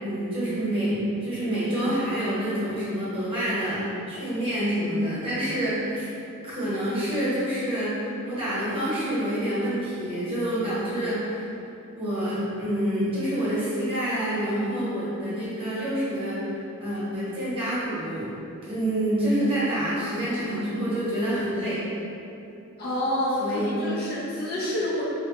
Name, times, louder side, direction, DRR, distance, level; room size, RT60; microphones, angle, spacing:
voice 1, 0.0-6.1 6.4-11.5 11.9-18.3 18.7-21.8 23.4-23.7, right 1 dB, 25° right, -11 dB, 0.9 m, -27 dB
voice 2, 22.8-25.0, left 1 dB, 45° left, -7 dB, 0.5 m, -28 dB
3.0 x 2.1 x 2.8 m, 2.8 s
head